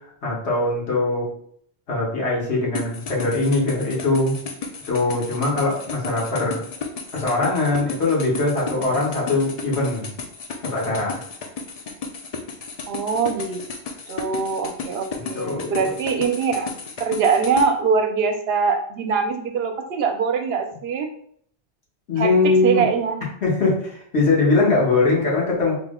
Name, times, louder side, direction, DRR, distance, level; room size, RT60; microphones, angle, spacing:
voice 1, 0.2-1.2 1.9-4.4 4.9-6.6 7.1-10.1 10.6-11.2 15.1-15.9 22.1-22.9 23.4-25.7, left 3 dB, 85° left, -4 dB, 1.5 m, -21 dB
sound 1, 2.7-17.7, left 5 dB, 50° left, 0.4 m, -33 dB
voice 2, 12.9-13.6 14.1-16.7 17.0-21.1 22.2-23.2, right 5 dB, 75° right, 6 dB, 0.8 m, -23 dB
4.2 x 2.0 x 3.6 m, 0.63 s
omnidirectional pair, 1.1 m